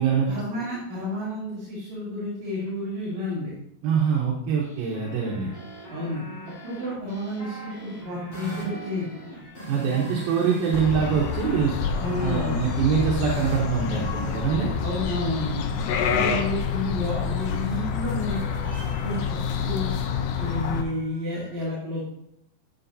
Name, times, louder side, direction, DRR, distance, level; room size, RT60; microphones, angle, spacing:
voice 1, 0.3-3.5 5.9-6.2 6.6-9.1 11.7-12.6 14.8-15.7 16.2-18.4 19.0-19.9 20.4-22.1, left 1 dB, 50° right, -7 dB, 3.2 m, -31 dB
voice 2, 3.8-5.5 9.7-11.7 12.2-14.7 15.8-16.3, right 7 dB, 75° right, -3 dB, 2.8 m, -24 dB
sound 1, 4.6-10.8 11.1-14.4, right 2 dB, 50° left, 4.9 m, -41 dB
sound 2, 8.1-21.5, left 1 dB, 5° right, 2.6 m, -47 dB
sound 3, 10.7-20.8, left 7 dB, 75° left, 2.1 m, -28 dB
12.0 x 7.9 x 2.7 m, 0.76 s
omnidirectional pair, 4.4 m